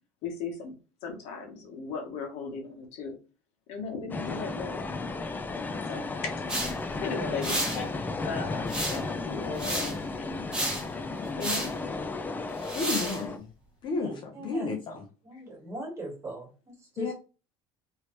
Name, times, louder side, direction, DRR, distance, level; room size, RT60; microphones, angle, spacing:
voice 1, 0.2-0.7 1.0-3.2 3.7-5.0 5.8-6.3 7.0-10.3 11.4-11.8, left 4 dB, 65° left, 2 dB, 1.2 m, -37 dB
sound 1, 4.1-13.4, left 3 dB, 15° left, 0.4 m, -34 dB
sound 2, 6.5-6.7 7.4-7.8 8.7-9.1 9.6-9.9 10.5-10.8 11.4-11.7 12.6-13.2, right 1 dB, 5° right, 1.6 m, -31 dB
voice 2, 12.7-13.5 13.8-15.0 17.0-17.1, left 3 dB, 45° left, 1 dB, 0.9 m, -32 dB
voice 3, 14.0-14.7 15.2-17.1, right 1 dB, 25° right, 0 dB, 2.0 m, -40 dB
3.1 x 3.0 x 3.0 m, 0.33 s
cardioid pair, 120°, 12 cm